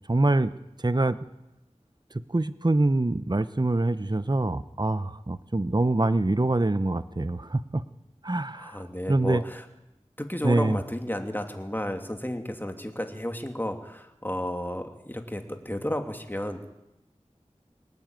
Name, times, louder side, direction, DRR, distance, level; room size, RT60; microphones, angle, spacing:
voice 1, 0.1-0.5 0.8-1.2 2.3-7.8 8.2-8.8 9.1-9.4 10.4-10.8, right 2 dB, 35° right, 13 dB, 0.9 m, -25 dB
voice 2, 8.5-9.6 10.2-16.7, left 1 dB, 15° left, 5 dB, 2.8 m, -32 dB
23.0 x 19.0 x 9.1 m, 0.90 s
wide cardioid pair, 40°, 12 cm